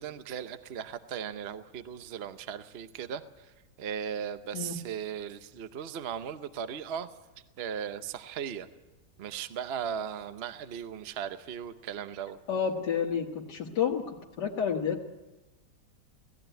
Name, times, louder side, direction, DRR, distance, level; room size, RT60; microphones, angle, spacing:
voice 1, 0.0-3.5 3.8-7.1 7.6-8.7 9.2-12.4, right 8 dB, 45° right, 11 dB, 0.9 m, -37 dB
voice 2, 12.5-14.0 14.4-15.1, left 7 dB, 85° left, -1 dB, 2.0 m, -29 dB
18.5 x 15.5 x 9.1 m, 1.1 s
omnidirectional pair, 1.8 m